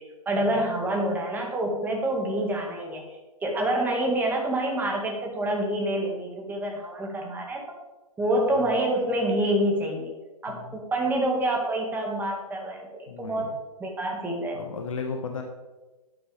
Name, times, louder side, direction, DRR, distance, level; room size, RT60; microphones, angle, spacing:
voice 1, 0.3-3.0 3.4-7.6 8.2-10.1 10.4-13.5 13.8-14.6, right 1 dB, 10° right, 0 dB, 1.9 m, -27 dB
voice 2, 13.1-13.5 14.5-15.4, left 5 dB, 60° left, 3 dB, 1.4 m, -34 dB
12.0 x 9.3 x 3.5 m, 1.1 s
figure-of-eight pair, 120°, 19 cm